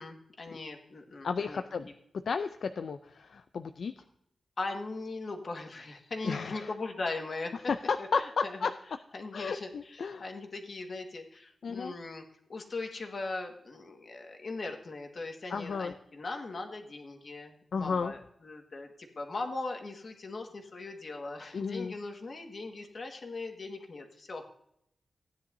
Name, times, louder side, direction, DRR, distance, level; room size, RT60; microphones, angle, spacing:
voice 1, 0.0-1.9 4.6-7.5 8.0-8.7 9.1-12.2 12.5-24.4, left 3 dB, 55° left, 3 dB, 1.6 m, -39 dB
voice 2, 1.2-1.9 2.3-3.9 6.2-6.7 7.7-8.7 9.3-10.2 11.6-11.9 15.5-15.9 17.7-18.1 21.5-21.9, left 5 dB, 75° left, 9 dB, 0.4 m, -33 dB
15.5 x 10.0 x 2.7 m, 0.74 s
wide cardioid pair, 95°, 0 cm